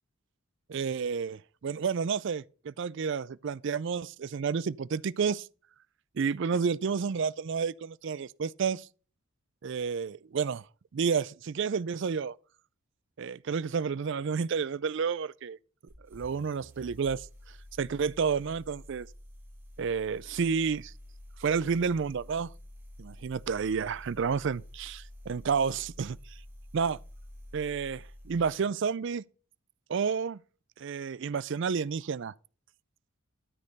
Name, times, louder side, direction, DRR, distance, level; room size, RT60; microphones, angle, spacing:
voice 1, 0.7-5.5 6.1-8.9 9.6-10.6 10.9-12.3 13.2-15.6 16.1-17.3 17.8-19.1 19.8-20.9 21.4-22.5 23.0-26.2 26.7-27.0 27.5-29.2 29.9-30.4 30.8-32.3, right 6 dB, 55° right, 0.4 m, -30 dB
sound 1, 15.9-28.6, left 1 dB, 10° right, 3.4 m, -49 dB
13.0 x 6.6 x 4.1 m
head